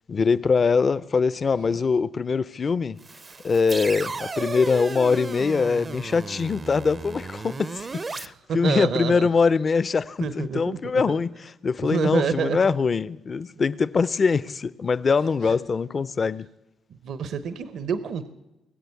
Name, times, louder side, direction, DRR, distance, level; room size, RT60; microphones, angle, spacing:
voice 1, 0.1-3.0 3.4-11.3 11.6-16.5, left 5 dB, 40° left, 0.4 m, -23 dB
sound 1, 3.0-8.3, right 4 dB, 30° right, 0.5 m, -34 dB
voice 2, 8.2-9.3 10.2-11.2 11.8-12.6 15.4-15.5 16.9-18.3, right 6 dB, 65° right, 0.7 m, -28 dB
20.5 x 7.7 x 8.3 m
cardioid pair, 90°, 0 cm